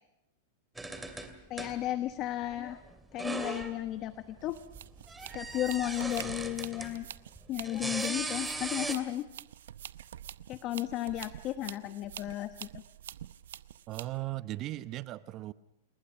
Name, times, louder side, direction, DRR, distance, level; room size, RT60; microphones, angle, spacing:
sound 1, 0.8-2.1 2.4-3.8 4.6-7.0 7.4-9.0, right 2 dB, 5° right, 2.5 m, -38 dB
voice 1, 1.5-2.8 3.1-4.6 5.3-7.1 7.5-9.3 10.5-12.7, left 14 dB, 40° left, 10 dB, 1.1 m, -34 dB
sound 2, 4.4-14.2, right 11 dB, 80° right, 0.7 m, -47 dB
voice 2, 13.9-15.5, right 16 dB, 40° right, 15 dB, 0.9 m, -37 dB
29.0 x 21.0 x 5.9 m, 0.89 s
hypercardioid pair, 130°, 0 cm